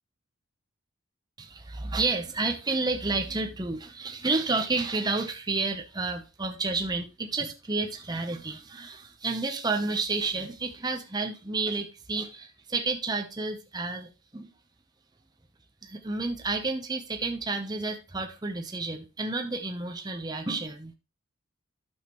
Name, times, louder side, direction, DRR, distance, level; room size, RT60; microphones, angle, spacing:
voice 1, 1.4-14.5 15.8-20.9, right 3 dB, 20° right, 0.7 m, -30 dB
11.5 x 6.4 x 3.0 m
head